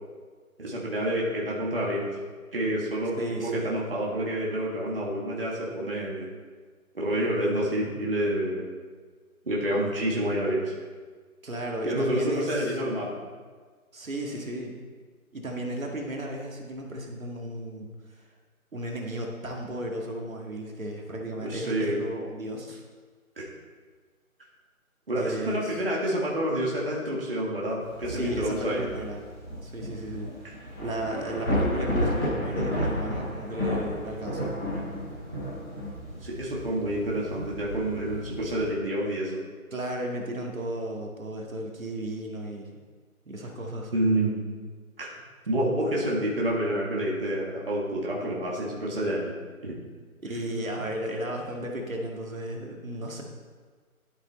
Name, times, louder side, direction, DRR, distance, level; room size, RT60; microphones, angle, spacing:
voice 1, 0.6-2.1 2.5-6.3 6.9-8.7 9.5-10.7 11.8-13.1 21.4-22.0 23.4-23.5 25.1-28.8 30.4-30.5 36.2-39.4 43.9-44.3 45.0-45.1 45.5-49.4 49.6-49.8, right 1 dB, 40° right, -4 dB, 2.0 m, -28 dB
voice 2, 3.2-3.7 11.4-12.8 13.9-14.8 15.3-18.2 18.7-22.8 25.1-25.8 28.1-29.2 29.6-30.3 30.8-34.5 39.7-42.7 43.3-43.9 50.2-53.2, right 1 dB, 65° right, 0 dB, 2.3 m, -34 dB
Thunder / Rain, 27.8-38.7, equal, 15° left, 3.3 m, -32 dB
11.0 x 8.8 x 4.3 m, 1.5 s
figure-of-eight pair, 175°, 44 cm